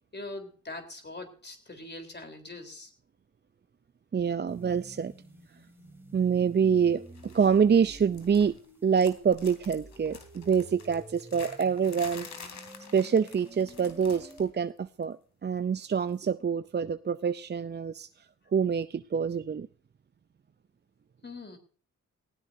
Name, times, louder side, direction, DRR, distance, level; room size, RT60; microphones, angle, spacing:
voice 1, 0.1-2.9 21.2-21.6, left 2 dB, 35° left, 6 dB, 3.9 m, -42 dB
voice 2, 4.1-5.1 6.1-8.5 8.8-12.3 12.9-15.2 15.4-18.1 18.5-19.7, right 6 dB, 35° right, 12 dB, 0.5 m, -26 dB
sound 1, 4.5-14.5, right 1 dB, 5° right, 3.5 m, -50 dB
sound 2, 7.2-7.6 7.9-8.7 8.9-14.5 14.8-15.0 16.1-16.2, left 5 dB, 70° left, 3.3 m, -48 dB
18.5 x 16.0 x 2.7 m, 0.41 s
cardioid pair, 85°, 29 cm